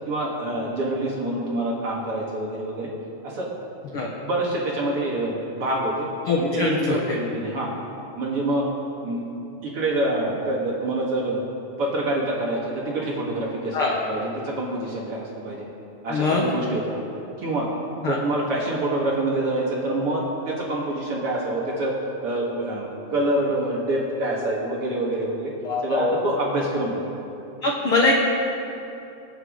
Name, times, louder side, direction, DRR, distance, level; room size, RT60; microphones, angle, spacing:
voice 1, 0.1-2.9 3.2-3.5 4.0-6.1 6.3-7.7 8.2-8.7 9.0-9.2 9.6-11.4 11.8-15.6 16.0-17.0 17.4-17.7 18.0-21.9 22.2-25.5 25.8-27.0, right 1 dB, 45° right, -3 dB, 2.2 m, -26 dB
voice 2, 6.3-7.2 13.7-14.0 16.1-16.4 18.0-18.2 25.6-26.3 27.6-28.1, left 3 dB, 70° left, -2 dB, 1.3 m, -23 dB
26.0 x 9.1 x 3.8 m, 2.9 s
omnidirectional pair, 4.1 m